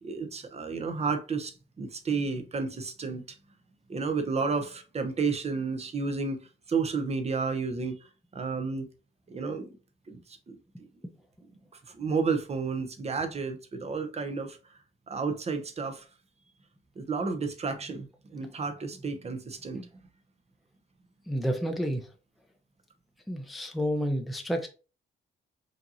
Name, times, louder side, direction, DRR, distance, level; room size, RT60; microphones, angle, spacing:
voice 1, 0.0-3.2 3.9-8.0 8.3-8.9 9.3-9.8 10.1-10.6 11.9-14.6 15.1-16.1 17.0-19.9, right 4 dB, 30° right, 0.8 m, -31 dB
voice 2, 21.3-22.0 23.3-24.7, equal, ahead, 0.6 m, -30 dB
5.1 x 2.9 x 2.7 m
cardioid pair, 90°, 20 cm